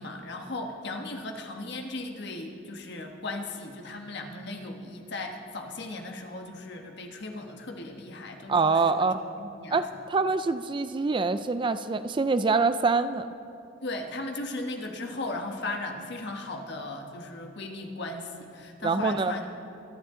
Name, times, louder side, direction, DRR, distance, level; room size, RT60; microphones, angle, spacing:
voice 1, 0.0-9.1 9.4-9.8 13.8-19.6, left 2 dB, 60° left, 3 dB, 1.4 m, -37 dB
voice 2, 8.5-9.2 9.7-13.3 18.8-19.3, right 4 dB, 25° right, 12 dB, 0.3 m, -25 dB
24.0 x 10.5 x 3.8 m, 2.7 s
head